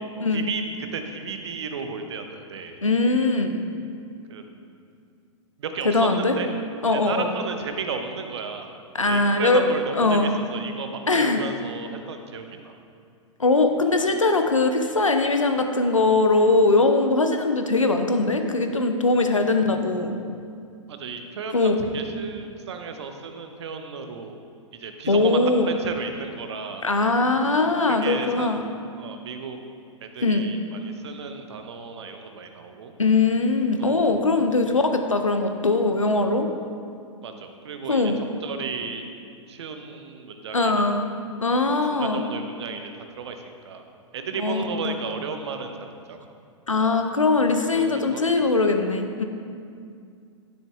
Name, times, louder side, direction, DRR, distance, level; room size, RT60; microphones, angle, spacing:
voice 1, 0.3-2.8 4.3-4.4 5.6-6.5 6.9-8.7 9.1-12.8 20.9-24.4 24.7-25.4 25.7-26.9 27.9-28.6 29.0-29.6 30.0-32.9 33.8-34.2 37.2-38.1 38.4-39.1 39.5-40.9 41.7-43.8 44.1-46.2 46.8-47.0 47.7-48.5, right 5 dB, 60° right, 6 dB, 0.7 m, -34 dB
voice 2, 2.8-3.6 5.8-6.4 6.8-7.3 8.9-9.6 10.0-10.3 11.1-11.4 13.4-20.2 21.5-21.8 25.1-25.7 26.8-28.6 30.2-30.5 33.0-36.5 37.9-38.3 40.5-41.1 41.4-42.3 44.4-44.9 46.7-49.2, left 3 dB, 90° left, 6 dB, 0.6 m, -21 dB
9.7 x 6.4 x 2.3 m, 2.3 s
figure-of-eight pair, 105°, 16 cm